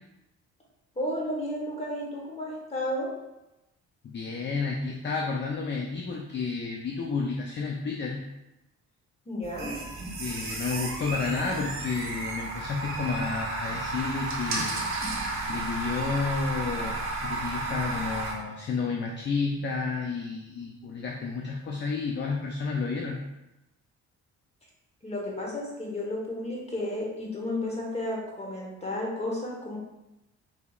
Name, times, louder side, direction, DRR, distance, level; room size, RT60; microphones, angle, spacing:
voice 1, 1.0-3.1 9.3-9.7 25.0-29.8, left 1 dB, 20° left, -3 dB, 1.2 m, -32 dB
voice 2, 4.0-8.2 10.2-14.9 15.5-23.2, left 4 dB, 35° left, 0 dB, 0.4 m, -31 dB
sound 1, 9.4-18.3, right 2 dB, 45° right, 1.0 m, -33 dB
4.1 x 2.8 x 2.4 m, 0.95 s
cardioid pair, 90°, 30 cm